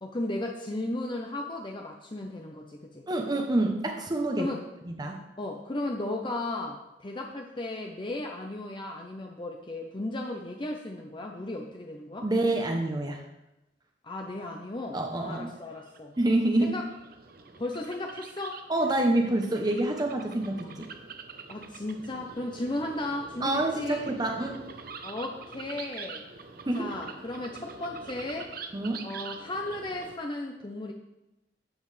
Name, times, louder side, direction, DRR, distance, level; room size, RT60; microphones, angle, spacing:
voice 1, 0.0-3.1 4.4-4.6 5.4-12.3 14.0-16.1 16.6-16.8 17.6-18.6 21.5-24.0 25.0-26.2 26.7-28.5 29.0-30.9, left 2 dB, 25° left, 2 dB, 0.7 m, -35 dB
voice 2, 3.1-4.5 4.8-5.2 12.2-13.2 14.9-15.5 16.2-16.8 18.7-20.9 23.4-24.6 26.7-26.9 28.7-29.0, right 1 dB, 25° right, 2 dB, 0.8 m, -27 dB
sound 1, 15.6-30.2, right 5 dB, 55° right, 0.8 m, -45 dB
12.0 x 7.8 x 3.3 m, 0.95 s
head